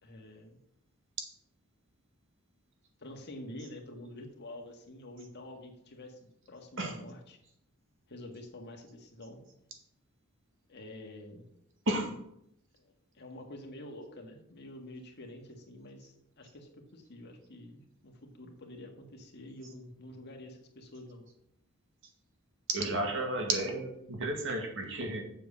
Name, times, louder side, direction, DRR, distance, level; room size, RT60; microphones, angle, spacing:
voice 1, 0.0-0.6 3.0-7.4 8.1-9.4 10.7-11.5 12.8-21.2, left 1 dB, 55° left, 2 dB, 1.8 m, -48 dB
voice 2, 11.9-12.2 22.7-25.2, right 2 dB, 60° right, 3 dB, 2.1 m, -32 dB
7.6 x 7.1 x 6.3 m, 0.76 s
head